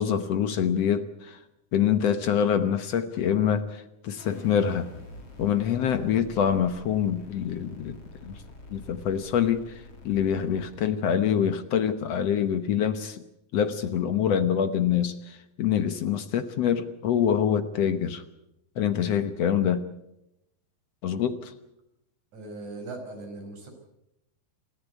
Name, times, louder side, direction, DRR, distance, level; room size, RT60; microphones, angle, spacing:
voice 1, 0.0-1.4 1.7-4.9 5.4-8.0 8.2-8.4 8.7-13.2 13.5-18.2 18.8-19.8 21.0-21.5, left 8 dB, 65° left, 10 dB, 1.7 m, -25 dB
sound 1, 4.2-10.9, left 1 dB, 45° left, 4.9 m, -47 dB
voice 2, 22.3-23.7, right 2 dB, 55° right, 3 dB, 6.7 m, -39 dB
28.0 x 14.5 x 8.2 m, 0.87 s
omnidirectional pair, 3.9 m